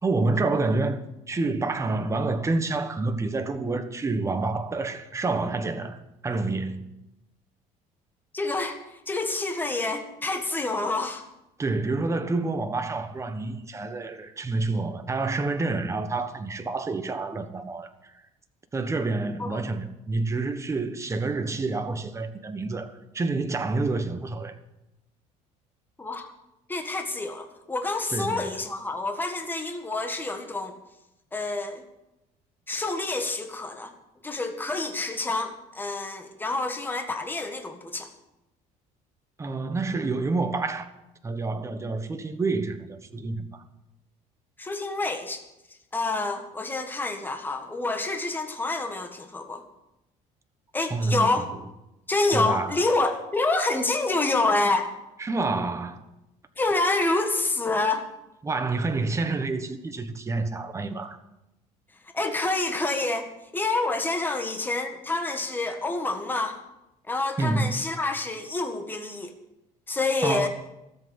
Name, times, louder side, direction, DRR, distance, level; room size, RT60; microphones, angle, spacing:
voice 1, 0.0-1.0 1.3-6.8 11.6-18.1 18.7-24.6 28.1-28.5 39.4-40.9 41.2-43.6 50.9-51.3 52.3-52.7 55.2-56.0 58.4-61.2 67.4-67.8 70.2-70.5, right 3 dB, 20° right, 1.3 m, -28 dB
voice 2, 8.3-11.2 19.4-19.6 26.0-26.3 26.7-30.7 31.3-31.8 32.7-33.9 34.2-38.1 44.6-45.4 45.9-49.6 50.7-51.5 52.1-55.0 56.6-58.1 62.1-66.6 67.1-69.3 69.9-70.5, left 2 dB, 15° left, 1.6 m, -27 dB
13.5 x 7.9 x 9.6 m
cardioid pair, 125°, 15 cm